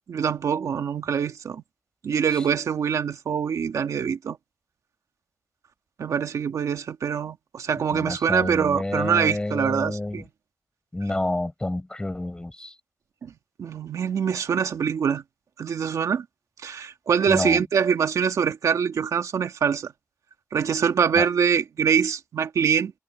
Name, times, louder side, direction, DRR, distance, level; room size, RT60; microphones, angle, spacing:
voice 1, 0.1-1.6 2.0-4.4 6.0-10.3 13.2-13.3 13.6-15.2 15.6-16.3 16.6-19.9 20.5-22.9, right 7 dB, 90° right, 1.9 m, -24 dB
voice 2, 7.9-10.2 10.9-12.7 17.3-17.6 21.1-21.3, left 1 dB, 15° left, 4.9 m, -29 dB
wide cardioid pair, 115°, 5 cm